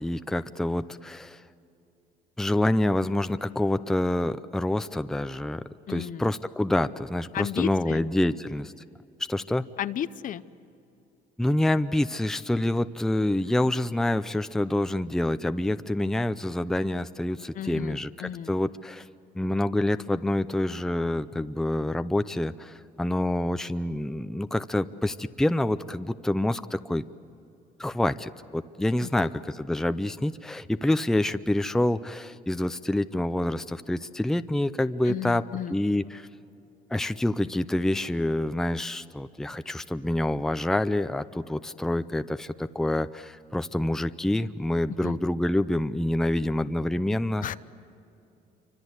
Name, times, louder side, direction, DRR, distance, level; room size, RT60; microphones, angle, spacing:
voice 1, 0.0-1.4 2.4-5.6 5.9-8.7 9.3-9.7 11.4-19.1 19.4-27.0 27.8-35.4 35.7-36.3 36.9-47.5, left 1 dB, 5° left, 11 dB, 0.6 m, -27 dB
voice 2, 5.9-6.3 7.3-8.0 9.8-10.4 17.5-18.5 29.2-29.3 35.1-35.8 45.0-45.2 47.4-47.6, left 10 dB, 50° left, 14 dB, 0.7 m, -33 dB
27.5 x 25.0 x 8.1 m, 2.8 s
cardioid pair, 110°, 17 cm